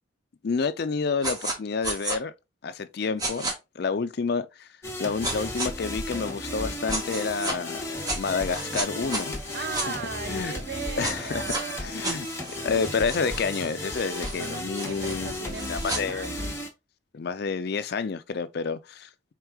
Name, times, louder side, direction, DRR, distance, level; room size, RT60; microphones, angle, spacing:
voice 1, 0.4-2.3 2.6-4.7 5.0-9.3 9.9-10.0 10.3-10.5 11.0-11.5 11.8-12.3 12.6-16.3 17.1-19.1, left 5 dB, 50° left, 0.4 m, -29 dB
sound 1, 1.2-1.6 1.8-2.2 3.2-3.5 5.2-5.7 6.9-7.6 8.0-9.9 11.0-11.6 12.0-16.0, right 1 dB, 20° right, 0.9 m, -33 dB
sound 2, 4.8-16.7, left 1 dB, 15° left, 0.8 m, -34 dB
voice 2, 9.5-12.0 14.4-16.5, right 6 dB, 50° right, 0.3 m, -38 dB
4.7 x 3.6 x 2.2 m
head